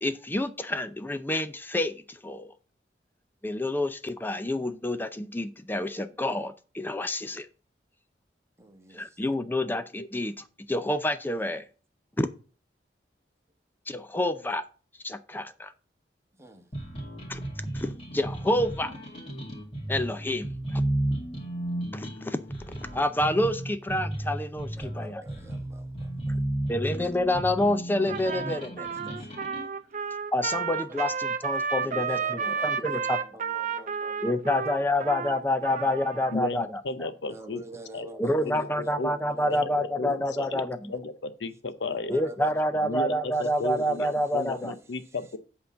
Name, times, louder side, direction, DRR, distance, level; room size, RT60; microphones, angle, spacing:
voice 1, 0.0-2.5 3.4-7.5 8.9-11.6 12.2-12.3 13.9-14.7 15.0-15.7 17.3-17.4 17.7-18.9 19.9-20.8 21.9-22.4 22.9-25.2 26.7-29.2 30.3-32.2 32.6-33.2 34.2-37.1 38.2-40.9 42.1-44.7, left 1 dB, 10° left, 0.5 m, -28 dB
voice 2, 8.6-9.2 16.3-16.7 24.8-26.4 29.2-29.7 30.0-30.1 30.8-31.0 31.8-36.5 37.3-41.1 41.9-45.3, right 2 dB, 15° right, 1.3 m, -48 dB
sound 1, 16.7-29.7, right 1 dB, 35° left, 2.3 m, -34 dB
Trumpet, 28.1-36.4, right 6 dB, 45° right, 0.6 m, -32 dB
voice 3, 36.3-37.6 37.9-38.1 38.4-38.7 39.0-39.1 39.4-42.1 42.8-45.4, left 3 dB, 80° left, 0.8 m, -34 dB
8.3 x 3.8 x 6.7 m
head